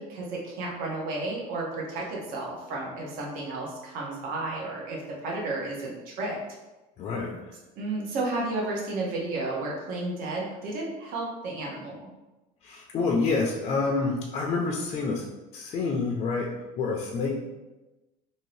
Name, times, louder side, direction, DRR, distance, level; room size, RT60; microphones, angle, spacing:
voice 1, 0.1-6.4 7.8-12.1, right 2 dB, 60° right, -2 dB, 0.8 m, -32 dB
voice 2, 7.0-7.3 12.6-15.2 15.5-16.5 16.8-17.4, left 4 dB, 35° left, 0 dB, 0.4 m, -27 dB
2.7 x 2.7 x 3.1 m, 1.1 s
cardioid pair, 155°, 16 cm